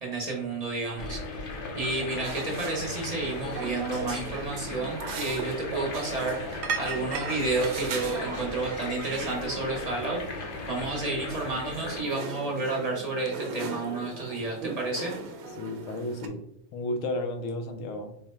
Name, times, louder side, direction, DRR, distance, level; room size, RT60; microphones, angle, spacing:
voice 1, 0.0-15.1, right 3 dB, 35° right, 0.8 m, -31 dB
sound 1, 1.0-12.0, left 3 dB, 50° left, 0.7 m, -37 dB
sound 2, 2.1-16.3, right 4 dB, 65° right, 0.8 m, -38 dB
voice 2, 2.3-2.8 15.6-16.5 16.7-18.2, left 1 dB, 75° left, 1.0 m, -33 dB
3.6 x 2.1 x 4.4 m
omnidirectional pair, 1.4 m